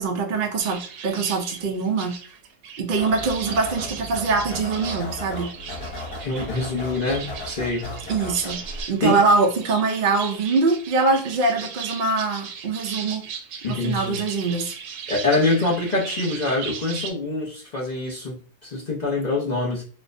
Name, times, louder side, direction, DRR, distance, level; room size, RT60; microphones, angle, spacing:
voice 1, 0.0-2.2 2.8-5.5 8.1-8.6 8.9-13.2 13.7-14.7, right 4 dB, 65° right, 1 dB, 0.5 m, -23 dB
sound 1, 0.6-17.1, right 6 dB, 85° right, 1.1 m, -37 dB
sound 2, 3.0-8.8, left 1 dB, 75° left, 2.0 m, -35 dB
voice 2, 6.2-7.9 9.0-9.2 13.6-14.2 15.1-19.8, left 2 dB, 50° left, -5 dB, 0.5 m, -25 dB
4.3 x 2.1 x 2.5 m, 0.41 s
omnidirectional pair, 1.7 m